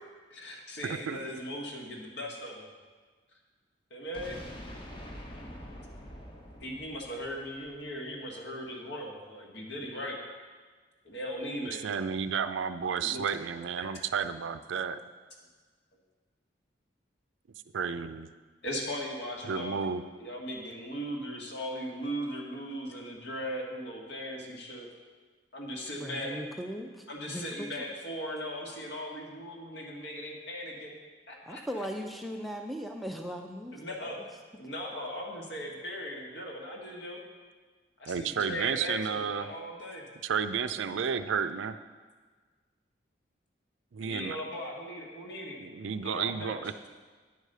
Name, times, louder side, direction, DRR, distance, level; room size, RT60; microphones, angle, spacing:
voice 1, 0.3-2.7 3.9-4.4 6.6-10.2 11.0-11.8 13.0-13.2 13.8-13.9 18.6-19.9 20.2-24.9 25.5-26.4 27.1-30.9 31.3-31.9 33.7-34.2 34.6-37.2 38.0-40.0 44.0-45.6 46.0-46.6, equal, 65° left, -1 dB, 1.5 m, -38 dB
voice 2, 0.9-1.3 11.8-15.0 17.7-18.3 19.5-20.0 38.1-39.5 40.2-41.7 43.9-44.4 45.6-46.7, right 6 dB, 85° right, 11 dB, 0.4 m, -32 dB
sound 1, 4.1-8.1, equal, 25° left, 0.9 m, -45 dB
voice 3, 26.0-27.7 31.5-34.1, equal, ahead, 2 dB, 0.4 m, -38 dB
9.4 x 4.8 x 6.7 m, 1.4 s
head